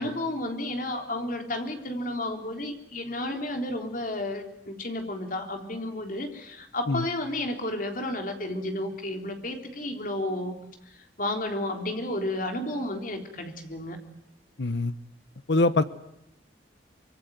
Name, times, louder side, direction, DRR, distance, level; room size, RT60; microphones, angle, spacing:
voice 1, 0.0-10.6 10.9-14.0, left 1 dB, 50° left, 4 dB, 3.7 m, -32 dB
voice 2, 14.6-14.9 15.5-15.8, left 2 dB, 70° left, 13 dB, 1.1 m, -23 dB
25.5 x 24.0 x 9.3 m, 0.81 s
head